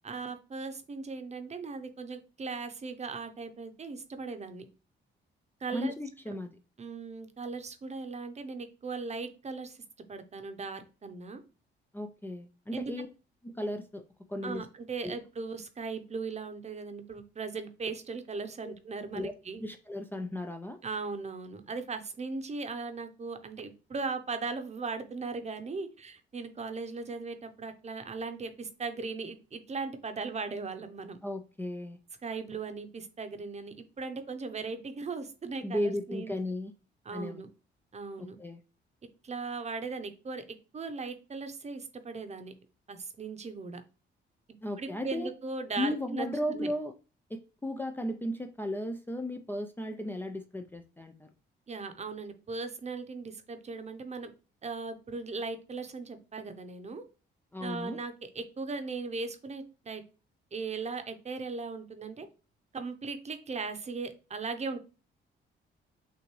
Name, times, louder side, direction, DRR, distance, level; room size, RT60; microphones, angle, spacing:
voice 1, 0.0-4.7 5.6-5.9 6.8-9.8 10.1-11.4 12.7-12.9 14.4-19.6 20.8-31.2 32.2-36.3 37.0-37.5 37.9-38.4 39.2-40.4 40.7-42.5 42.9-43.8 44.8-46.7 51.7-54.3 54.6-57.0 57.6-60.0 60.5-62.3 62.7-64.8, right 4 dB, 35° right, 8 dB, 0.8 m, -38 dB
voice 2, 5.7-6.5 11.9-13.1 13.4-14.0 14.3-14.6 15.0-15.1 18.6-18.7 19.1-19.3 19.6-20.8 31.2-32.0 35.6-36.7 37.1-37.4 38.2-38.6 44.6-45.3 45.8-46.9 47.3-51.3 57.5-58.0, left 1 dB, 10° left, 6 dB, 0.4 m, -35 dB
6.5 x 2.5 x 3.1 m, 0.34 s
cardioid pair, 90°, 20 cm